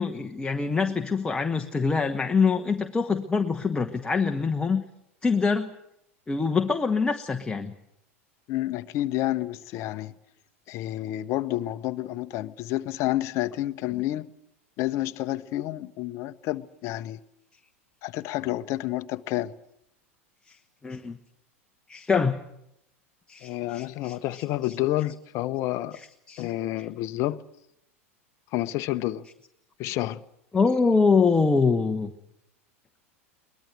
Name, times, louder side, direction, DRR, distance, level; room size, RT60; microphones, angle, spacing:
voice 1, 0.0-4.8 5.2-5.7 6.3-7.7 20.5-20.6 20.8-21.2 21.9-22.4 23.3-24.4 26.3-26.5 26.8-26.9 30.5-32.1, left 4 dB, 10° left, 1.2 m, -24 dB
voice 2, 8.5-10.1 10.7-14.3 14.8-17.2 18.0-19.5 23.4-26.0 26.4-27.4 28.5-29.3 29.8-30.2, left 15 dB, 40° left, 0.9 m, -29 dB
23.0 x 20.5 x 8.0 m
figure-of-eight pair, 85°, 7 cm